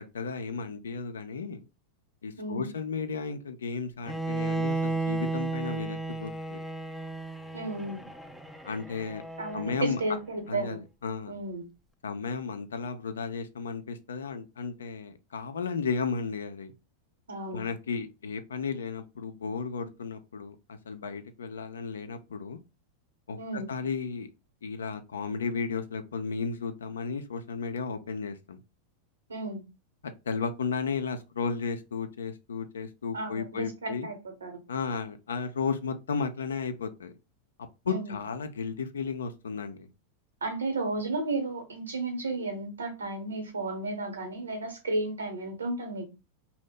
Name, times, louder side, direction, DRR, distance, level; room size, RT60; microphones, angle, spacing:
voice 1, 0.0-1.7 2.2-6.6 8.6-9.2 9.5-10.0 10.5-11.3 12.0-16.7 17.5-22.6 23.3-24.3 24.6-28.6 30.0-34.1 34.7-37.1 37.8-39.9, left 5 dB, 70° left, 0.4 m, -34 dB
voice 2, 2.4-2.7 7.5-8.0 9.4-10.8 11.3-11.6 17.3-17.6 23.4-23.7 29.3-29.6 33.1-34.6 37.9-38.2 40.4-46.1, right 2 dB, 70° right, 0.9 m, -33 dB
Bowed string instrument, 4.1-10.1, right 3 dB, ahead, 0.3 m, -34 dB
2.7 x 2.1 x 3.7 m
figure-of-eight pair, 90°, 0 cm